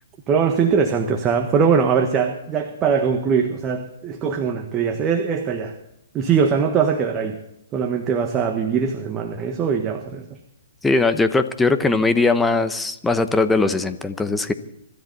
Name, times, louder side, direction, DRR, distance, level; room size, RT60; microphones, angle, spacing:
voice 1, 0.3-5.7 6.1-7.4 7.7-10.3, right 6 dB, 20° right, 4 dB, 1.4 m, -21 dB
voice 2, 10.8-14.5, left 3 dB, 5° left, 10 dB, 0.9 m, -20 dB
25.0 x 13.5 x 4.1 m, 0.79 s
hypercardioid pair, 150°, 0 cm